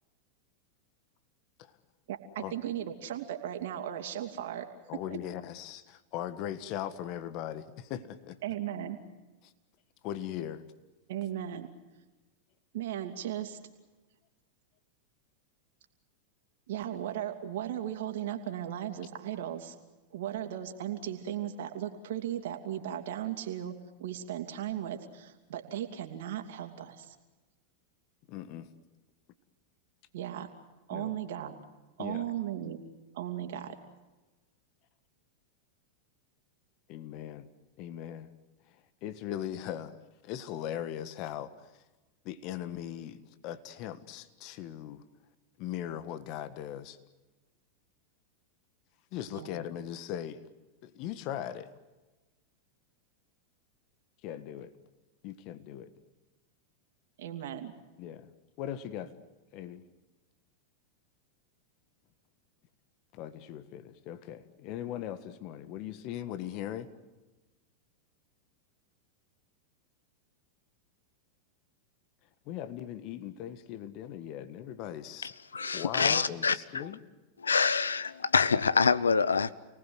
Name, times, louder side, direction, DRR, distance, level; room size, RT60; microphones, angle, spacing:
voice 1, 2.1-4.7 8.4-9.0 11.1-11.7 12.7-13.6 16.7-19.8 20.1-23.7 24.0-27.2 30.1-30.5 30.9-31.6 32.0-32.8 33.1-33.7 49.3-49.5 57.2-57.7, right 11 dB, 70° right, 2.8 m, -36 dB
voice 2, 4.9-8.4 10.0-10.6 28.3-28.7 30.9-31.1 32.0-32.2 36.9-37.5 37.8-38.3 39.0-40.0 40.2-41.5 42.2-45.0 45.6-47.0 49.1-50.4 50.8-51.7 54.2-54.7 55.2-55.9 58.0-58.3 58.6-59.2 59.5-59.8 63.1-66.9 72.4-75.3 75.7-77.0, left 11 dB, 50° left, 1.6 m, -39 dB
voice 3, 75.5-76.8 77.4-79.5, left 5 dB, 90° left, 0.8 m, -26 dB
29.5 x 19.0 x 8.0 m
hypercardioid pair, 100°, 0 cm